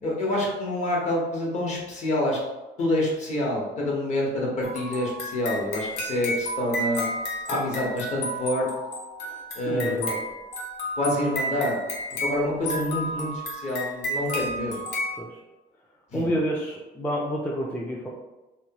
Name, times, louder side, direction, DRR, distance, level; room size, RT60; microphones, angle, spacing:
voice 1, 0.0-2.4 2.8-7.1 7.5-8.7 9.6-10.0 11.0-11.8 12.2-14.8 16.1-16.2, left 1 dB, 45° left, -3 dB, 1.0 m, -27 dB
sound 1, 4.6-15.2, equal, 85° left, 0.7 m, -32 dB
voice 2, 9.2-10.2 15.2-15.4 16.1-18.1, equal, 10° left, -3 dB, 0.4 m, -29 dB
3.1 x 2.2 x 2.8 m, 1.1 s
cardioid pair, 110°, 17 cm